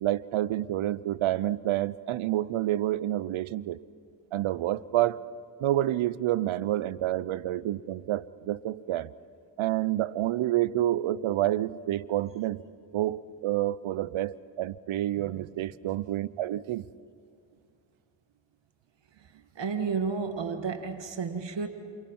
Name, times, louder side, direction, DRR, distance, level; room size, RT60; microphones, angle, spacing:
voice 1, 0.0-3.8 4.3-5.2 5.6-9.1 9.6-12.6 12.9-16.8, right 14 dB, 80° right, 0.7 m, -28 dB
voice 2, 19.6-21.7, right 5 dB, 65° right, 2.0 m, -31 dB
28.5 x 24.5 x 5.5 m
supercardioid pair, 45°, 47 cm